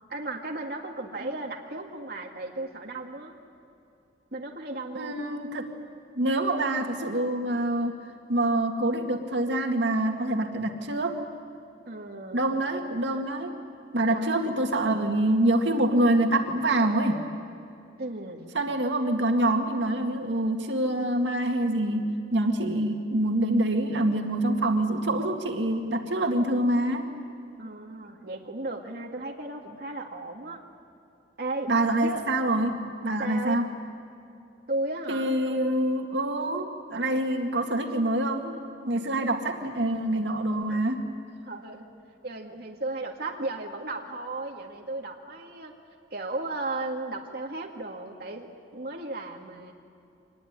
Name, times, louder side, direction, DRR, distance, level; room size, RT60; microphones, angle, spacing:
voice 1, 0.1-3.4 4.3-5.2 11.9-12.5 14.1-14.5 18.0-18.5 27.6-30.6 31.4-31.7 32.0-32.2 33.2-33.6 34.7-35.8 40.7-40.8 41.4-41.9 42.2-45.7 46.1-49.7, right 2 dB, 55° right, 0 dB, 2.0 m, -35 dB
voice 2, 5.0-5.7 6.2-7.9 8.3-11.2 12.3-13.5 13.9-17.2 18.5-22.0 22.3-27.1 31.7-32.7 33.0-33.7 35.1-38.5 38.8-41.0, right 1 dB, 75° right, 4 dB, 2.1 m, -26 dB
25.0 x 20.5 x 9.7 m, 2.7 s
head